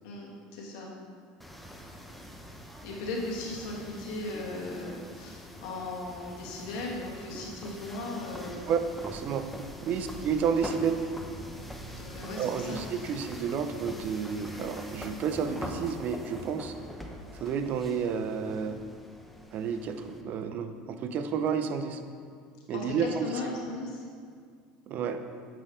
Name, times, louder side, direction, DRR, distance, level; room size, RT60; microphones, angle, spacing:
voice 1, 0.0-0.9 2.8-8.7 10.0-10.1 11.9-12.8 22.7-24.0, left 2 dB, 75° left, -2 dB, 1.6 m, -37 dB
sound 1, 1.4-20.2, equal, ahead, 0.7 m, -44 dB
voice 2, 8.7-9.5 9.8-11.0 12.4-16.7 17.3-18.8 19.5-22.0 22.7-23.3 24.9-25.2, right 6 dB, 50° right, 8 dB, 0.5 m, -31 dB
7.5 x 5.4 x 3.7 m, 2.1 s
supercardioid pair, 95°, 4 cm